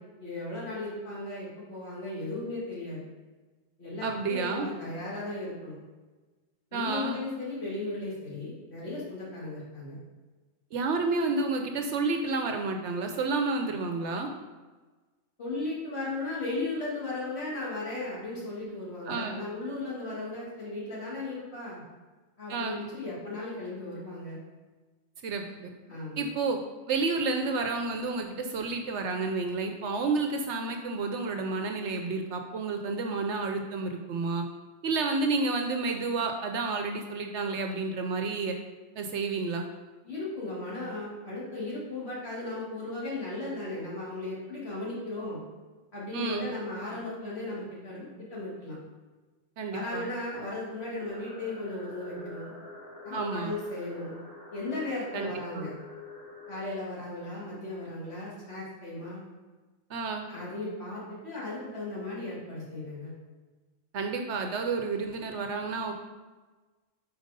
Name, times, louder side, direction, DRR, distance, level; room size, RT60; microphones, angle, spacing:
voice 1, 0.2-3.0 3.8-5.8 6.7-10.0 15.4-21.8 22.4-24.4 25.4-25.5 25.9-26.3 40.0-45.4 45.9-48.8 49.7-52.5 53.0-54.1 54.5-55.7 56.5-59.2 60.3-63.1, left 2 dB, 55° left, -7 dB, 2.6 m, -36 dB
voice 2, 4.0-4.7 6.7-7.2 10.7-14.3 19.1-19.4 22.5-22.8 25.2-25.7 26.2-26.6 26.9-34.4 34.8-38.6 39.0-39.7 46.1-46.5 49.6-50.1 53.1-53.5 55.1-55.7 59.9-60.2 63.9-65.9, right 3 dB, 65° right, 4 dB, 0.8 m, -30 dB
sound 1, 51.1-56.7, left 3 dB, 80° left, 2.8 m, -46 dB
5.2 x 4.7 x 5.1 m, 1.3 s
omnidirectional pair, 1.4 m